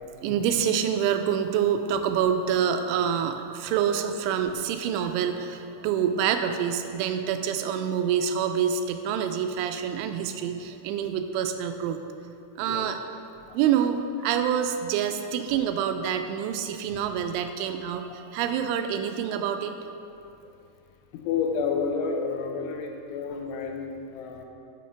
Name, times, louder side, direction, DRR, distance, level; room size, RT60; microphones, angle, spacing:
voice 1, 0.2-12.0 12.6-13.0 13.5-19.8, right 8 dB, 85° right, 7 dB, 3.0 m, -26 dB
voice 2, 21.3-24.5, left 5 dB, 80° left, 3 dB, 3.2 m, -30 dB
8.4 x 7.9 x 5.7 m, 2.6 s
omnidirectional pair, 5.5 m